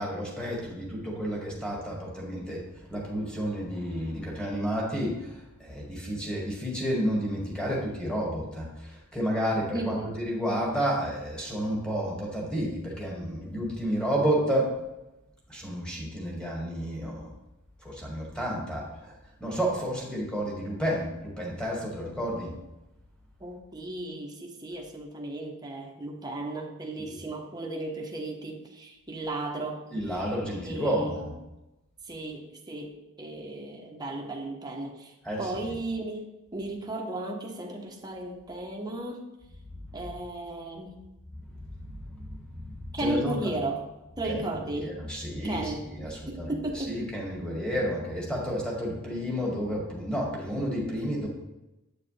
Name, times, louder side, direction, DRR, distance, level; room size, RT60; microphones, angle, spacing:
voice 1, 0.0-14.7 15.5-17.3 17.8-19.2 19.4-22.6 29.9-31.3 35.2-35.5 39.7-40.0 41.5-43.6 44.3-44.5 44.7-46.5 46.7-51.3, equal, 5° left, -3 dB, 2.0 m, -31 dB
voice 2, 9.7-10.2 23.4-29.8 30.1-30.2 30.6-31.2 32.0-39.2 39.9-41.0 42.9-43.8 44.2-45.0 45.4-45.9 46.3-47.0, right 2 dB, 20° right, 0 dB, 1.0 m, -35 dB
8.5 x 6.6 x 3.3 m, 0.97 s
head